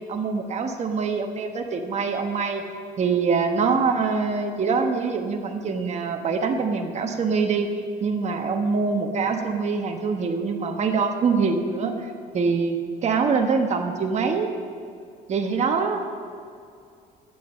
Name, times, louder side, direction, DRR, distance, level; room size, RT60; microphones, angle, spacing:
voice 1, 0.1-2.6 3.0-7.7 8.0-14.5 15.3-16.0, right 5 dB, 40° right, 4 dB, 1.2 m, -24 dB
12.5 x 8.9 x 6.6 m, 2.3 s
cardioid pair, 110°, 17 cm